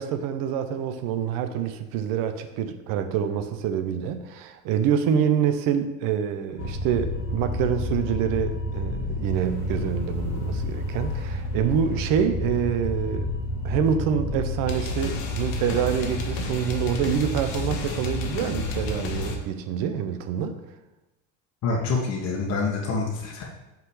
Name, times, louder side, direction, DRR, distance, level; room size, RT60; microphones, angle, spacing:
voice 1, 0.0-13.3 13.6-20.6, right 8 dB, 60° right, 9 dB, 0.7 m, -26 dB
sound 1, 6.6-19.4, left 2 dB, 70° left, 1.2 m, -30 dB
voice 2, 21.6-23.4, left 4 dB, 45° left, -2 dB, 1.2 m, -26 dB
5.6 x 3.9 x 4.8 m, 1.0 s
supercardioid pair, 105°, 38 cm